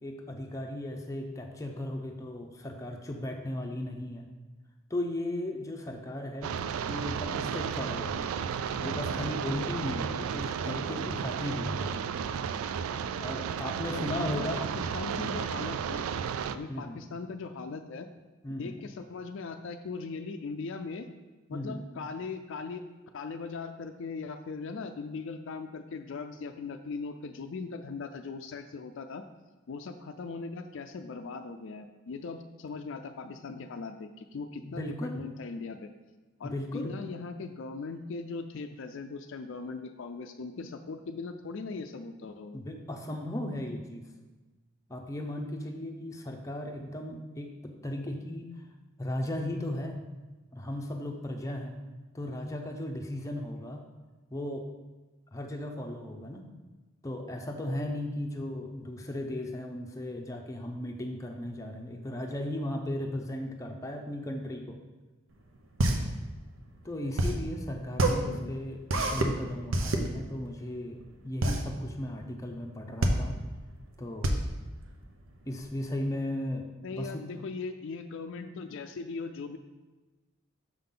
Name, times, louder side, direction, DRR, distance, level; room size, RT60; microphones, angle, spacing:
voice 1, 0.0-4.3 4.9-6.6 6.9-8.2 8.8-12.0 13.2-14.6 16.7-17.0 18.4-18.8 21.5-21.8 34.6-35.2 36.4-37.0 42.5-44.1 44.9-48.5 49.0-50.0 50.5-51.8 52.1-53.8 54.3-54.7 55.3-56.5 57.0-64.8 66.8-68.8 69.1-71.0 71.2-73.4 74.0-74.3 75.4-77.2, left 1 dB, 15° left, 2 dB, 0.6 m, -36 dB
sound 1, 6.4-16.6, right 7 dB, 85° right, 0.3 m, -33 dB
voice 2, 13.9-16.0 16.5-18.1 18.6-21.1 21.5-22.8 23.1-29.2 29.7-35.9 36.4-42.6 67.9-68.5 76.8-79.6, left 4 dB, 65° left, 7 dB, 0.4 m, -39 dB
sound 2, 65.3-75.7, right 1 dB, 70° right, 0.7 m, -29 dB
6.4 x 5.6 x 3.8 m, 1.2 s
head